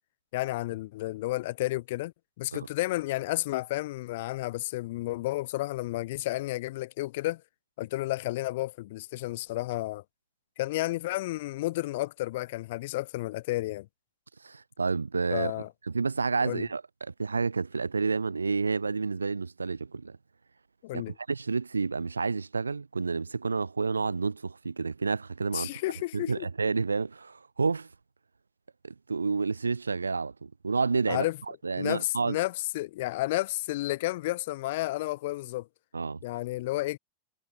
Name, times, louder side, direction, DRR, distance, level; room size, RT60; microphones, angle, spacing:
voice 1, 0.3-7.4 7.8-10.0 10.6-13.9 15.3-15.7 16.4-16.7 20.8-21.2 25.5-26.5 31.1-31.4 31.8-35.7 36.2-37.0, left 18 dB, 50° left, 0.4 m, -31 dB
voice 2, 14.4-15.5 15.9-20.2 20.9-21.0 21.3-25.8 26.1-27.9 28.8-31.2 31.6-32.4 35.9-36.2, right 4 dB, 75° right, 0.5 m, -29 dB
figure-of-eight pair, 90°, 0 cm